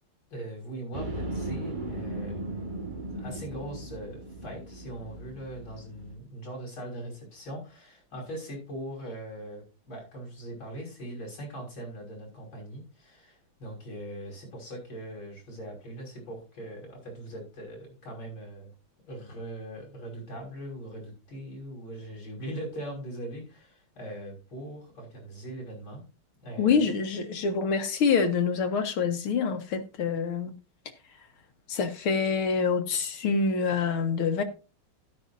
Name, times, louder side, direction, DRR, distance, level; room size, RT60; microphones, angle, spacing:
voice 1, 0.3-18.7 19.0-26.0 26.4-26.9, right 1 dB, 65° left, 6.7 m, -41 dB
sound 1, 0.9-6.2, right 1 dB, 25° right, 1.3 m, -37 dB
voice 2, 26.6-30.5 31.7-34.4, left 5 dB, 85° left, 2.3 m, -26 dB
13.0 x 11.0 x 2.7 m
omnidirectional pair, 2.3 m